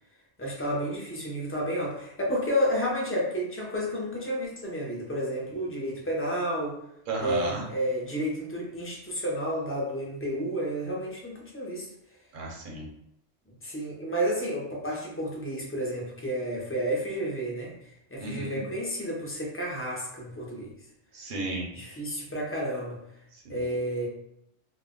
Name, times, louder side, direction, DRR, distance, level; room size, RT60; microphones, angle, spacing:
voice 1, 0.4-6.8 7.2-11.9 13.6-17.8 18.1-20.7 21.7-23.0 23.5-24.1, equal, 20° left, -3 dB, 0.3 m, -31 dB
voice 2, 7.1-7.6 12.3-12.9 18.2-18.6 21.1-21.7, right 2 dB, 50° right, -1 dB, 0.7 m, -32 dB
2.4 x 2.1 x 3.6 m, 0.78 s
omnidirectional pair, 1.2 m